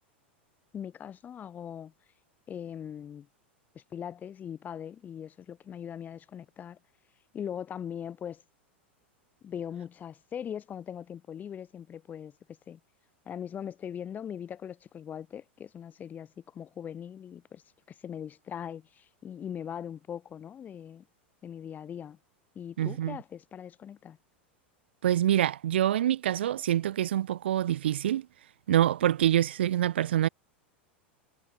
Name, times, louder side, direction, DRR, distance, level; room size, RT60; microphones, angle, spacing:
voice 1, 0.7-1.9 2.5-3.3 3.7-6.8 7.3-8.4 9.4-12.3 12.7-12.8 13.2-21.1 21.4-22.2 22.5-24.2, left 8 dB, 25° left, 2.9 m, -40 dB
voice 2, 22.8-23.2 25.0-28.3 28.7-30.3, right 11 dB, 70° right, 0.9 m, -26 dB
figure-of-eight pair, 90°, 6 cm